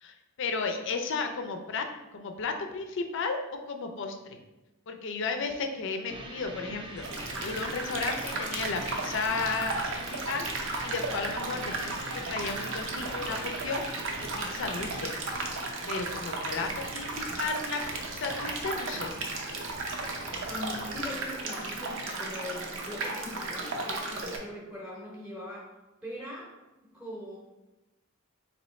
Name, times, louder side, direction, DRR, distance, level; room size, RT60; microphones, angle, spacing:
voice 1, 0.0-4.4 4.9-7.0 7.4-13.8 14.4-15.1 15.9-17.8 18.1-19.1, left 4 dB, 60° left, 5 dB, 0.5 m, -34 dB
sound 1, 6.1-15.0, right 1 dB, 25° right, 0.4 m, -43 dB
sound 2, 6.8-21.1, equal, 80° right, 1.3 m, -51 dB
sound 3, 7.0-24.4, right 2 dB, 60° right, 0.6 m, -35 dB
voice 2, 20.5-25.7 26.0-26.5 26.8-27.4, left 1 dB, 5° right, -5 dB, 0.8 m, -41 dB
4.1 x 3.0 x 3.1 m, 1.0 s
head